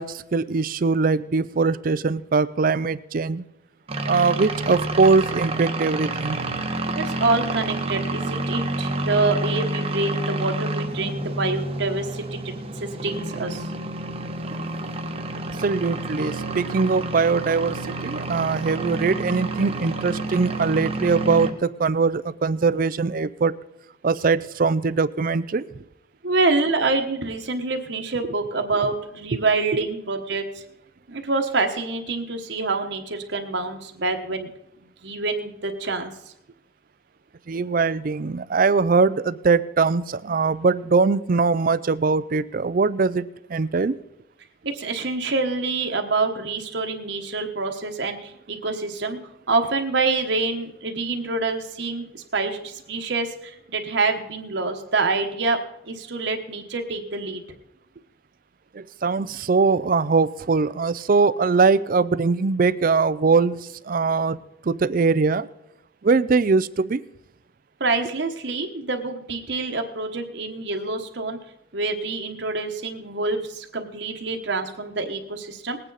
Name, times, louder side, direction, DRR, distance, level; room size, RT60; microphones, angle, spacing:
voice 1, 0.0-3.5 4.1-6.4 15.6-23.5 24.0-25.7 29.3-29.4 37.5-44.0 58.7-64.4 64.6-65.5 66.0-67.0, right 4 dB, 45° right, 17 dB, 0.4 m, -21 dB
sound 1, 3.9-21.5, right 2 dB, 30° right, 1.0 m, -29 dB
voice 2, 7.0-13.7 26.2-30.6 31.1-34.5 35.0-36.1 44.6-49.2 49.5-55.6 55.9-57.4 67.8-71.4 71.7-75.8, right 3 dB, 60° right, 4 dB, 1.2 m, -26 dB
19.5 x 9.0 x 4.0 m, 0.85 s
head